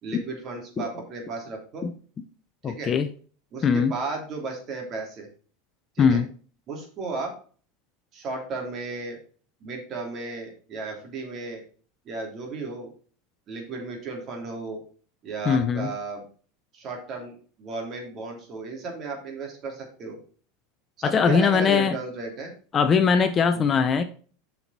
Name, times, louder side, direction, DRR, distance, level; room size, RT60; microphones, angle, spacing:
voice 1, 0.0-1.8 2.6-2.9 3.5-5.3 5.9-6.2 6.7-7.3 8.1-9.2 9.6-11.6 12.0-12.9 13.5-14.8 15.2-16.2 16.7-20.2 21.0-22.5 23.5-23.7, right 3 dB, 35° right, 3.1 m, -34 dB
voice 2, 2.6-3.1 3.6-3.9 6.0-6.3 15.5-15.9 21.0-22.0 22.7-24.0, left 6 dB, 25° left, 0.7 m, -21 dB
7.6 x 5.9 x 4.3 m
supercardioid pair, 140°, 0 cm